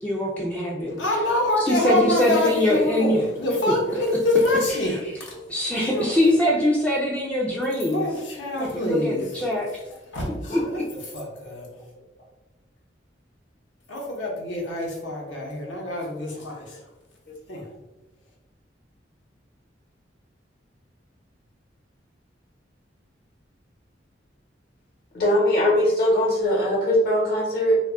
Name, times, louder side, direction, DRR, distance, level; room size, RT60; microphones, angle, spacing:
voice 1, 0.0-1.0 1.6-3.2 4.8-5.0 5.5-8.1 8.6-9.8 10.5-10.8, left 1 dB, 10° left, -4 dB, 0.3 m, -23 dB
voice 2, 1.0-5.0 5.3-5.4 5.9-6.2 7.9-9.2 10.1-10.8 11.1-11.7 13.9-16.8 17.5-17.7, left 1 dB, 80° left, -1 dB, 0.8 m, -26 dB
voice 3, 25.1-27.8, equal, 55° left, -5 dB, 0.9 m, -21 dB
2.3 x 2.0 x 3.5 m, 1.0 s
head